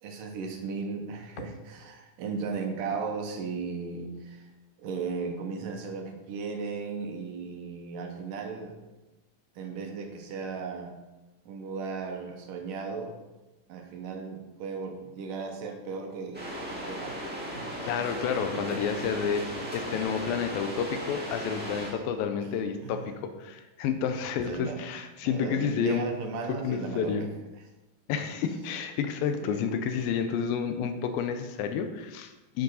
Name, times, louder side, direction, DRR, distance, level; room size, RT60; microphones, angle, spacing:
voice 1, 0.0-4.5 4.8-8.8 9.6-10.9 11.5-13.2 13.7-16.4 16.9-18.0 18.5-18.9 21.7-22.0 22.4-22.5 22.8-23.1 24.4-24.8 25.2-27.3 28.2-28.3 29.2-29.6, right 5 dB, 70° right, 3 dB, 2.5 m, -36 dB
sound 1, 16.3-21.9, equal, 5° right, 1.6 m, -37 dB
voice 2, 17.8-19.4 19.7-26.1 26.5-27.2 28.1-32.6, left 7 dB, 90° left, 7 dB, 2.5 m, -30 dB
10.5 x 7.9 x 4.1 m, 1.1 s
omnidirectional pair, 4.2 m